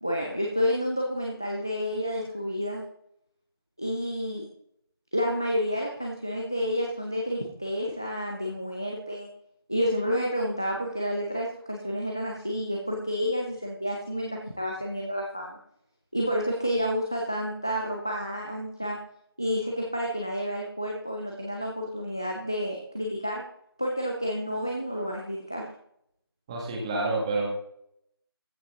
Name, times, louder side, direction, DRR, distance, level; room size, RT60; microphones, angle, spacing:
voice 1, 0.0-2.8 3.8-4.4 5.1-9.3 9.7-15.6 16.1-19.0 19.4-23.4 23.8-25.7, equal, 10° left, 0 dB, 0.4 m, -30 dB
voice 2, 26.5-27.5, right 2 dB, 15° right, -1 dB, 1.5 m, -28 dB
14.5 x 8.0 x 3.6 m, 0.70 s
figure-of-eight pair, 170°, 13 cm